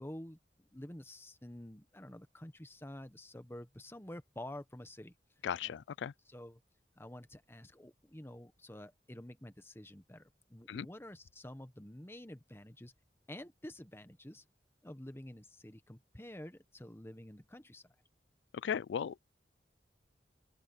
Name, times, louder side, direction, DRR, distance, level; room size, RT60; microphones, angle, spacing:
voice 1, 0.0-5.1 5.6-5.7 6.3-6.6 7.0-12.9 13.3-14.5 14.8-17.9, left 1 dB, 15° left, 1.3 m, -49 dB
voice 2, 5.4-6.1 10.7-10.9 18.5-19.2, left 8 dB, 90° left, 0.4 m, -37 dB
open air
head